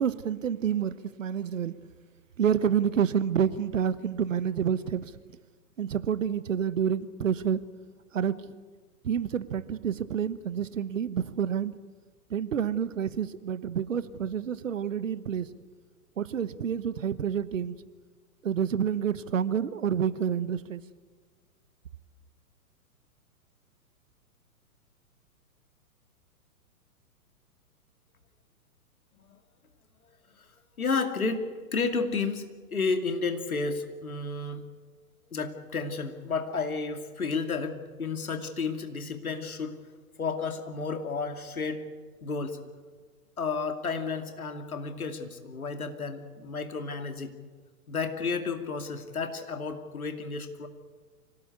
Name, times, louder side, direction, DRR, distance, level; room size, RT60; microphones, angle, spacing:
voice 1, 0.0-1.7 2.4-5.2 5.8-7.6 8.1-8.5 9.0-11.7 12.3-15.5 16.2-17.7 18.4-20.8, right 8 dB, 55° right, 1.2 m, -28 dB
voice 2, 30.8-34.6 35.3-39.8 40.2-41.9 42.2-42.6 43.4-47.3 47.9-50.7, left 4 dB, 70° left, 2.6 m, -32 dB
25.0 x 18.0 x 8.4 m
figure-of-eight pair, 115°, 45 cm